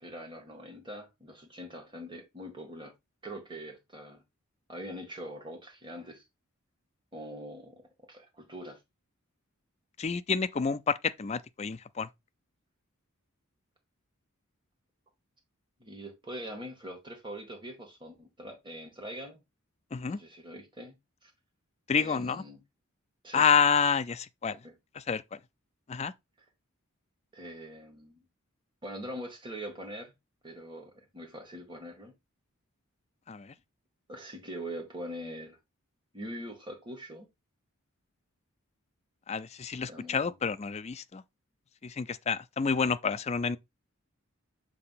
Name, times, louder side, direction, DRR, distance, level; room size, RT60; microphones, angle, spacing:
voice 1, 0.0-2.9 3.2-4.2 4.7-6.2 7.1-7.8 8.1-8.8 15.8-19.4 20.1-20.9 21.2-21.3 22.0-22.6 23.2-23.4 24.6-24.7 27.3-28.2 28.8-30.1 30.4-32.1 34.1-35.6 36.1-37.3 39.9-40.3, equal, 20° right, 1.6 m, -43 dB
voice 2, 10.0-12.1 19.9-20.2 21.9-22.4 23.3-24.6 25.0-25.2 25.9-26.1 33.3-33.5 39.3-41.2 41.8-43.6, left 6 dB, 30° left, 0.4 m, -29 dB
6.7 x 2.6 x 5.6 m
head